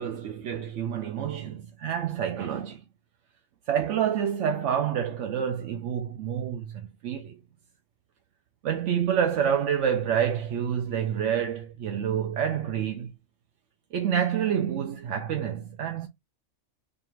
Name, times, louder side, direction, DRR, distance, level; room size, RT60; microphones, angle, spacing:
voice 1, 0.0-2.8 3.7-7.4 8.6-13.1 13.9-16.1, right 8 dB, 75° right, 0.9 m, -28 dB
4.9 x 2.4 x 2.9 m
omnidirectional pair, 1.3 m